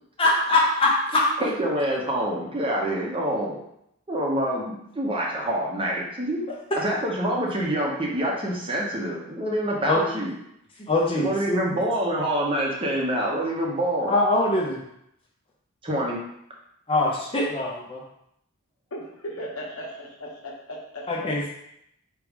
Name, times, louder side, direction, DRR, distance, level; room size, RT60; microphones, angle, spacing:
voice 1, 0.2-1.2 9.9-10.0 10.9-11.6 14.1-14.8 16.9-18.0 21.1-21.5, left 2 dB, 25° left, -3 dB, 0.6 m, -22 dB
voice 2, 1.1-3.6 4.1-6.4 6.8-10.4 11.1-14.1 15.8-16.2, right 1 dB, 25° right, -2 dB, 0.8 m, -26 dB
voice 3, 18.9-21.3, equal, 70° left, -2 dB, 1.1 m, -37 dB
4.7 x 3.0 x 3.5 m, 0.76 s
head